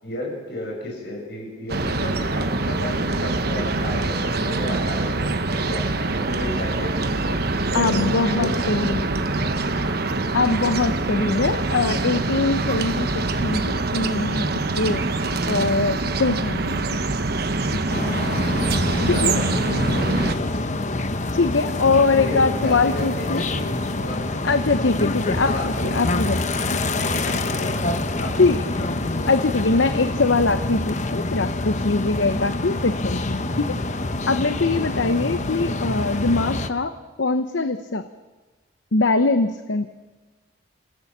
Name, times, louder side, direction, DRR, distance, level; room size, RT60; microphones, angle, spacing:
voice 1, 0.0-7.4 7.7-9.6 18.8-19.3 19.8-20.8 22.2-24.4 25.5-26.1 27.0-27.9 28.2-28.5, left 1 dB, 55° left, -1 dB, 7.3 m, -33 dB
sound 1, 1.7-20.4, right 2 dB, 50° right, 1.1 m, -24 dB
sound 2, 3.4-13.1, right 1 dB, 25° right, 7.9 m, -51 dB
voice 2, 7.7-9.1 10.3-15.0 15.5-16.8 17.7-18.0 19.1-19.4 21.3-23.4 24.4-26.4 26.7-26.8 28.4-28.6 29.3-33.7 34.3-36.9 37.2-38.1 38.9-39.9, left 3 dB, 70° left, 10 dB, 0.8 m, -22 dB
sound 3, 17.9-36.7, left 2 dB, 35° left, 1.0 m, -26 dB
27.5 x 16.0 x 7.3 m, 1.3 s
head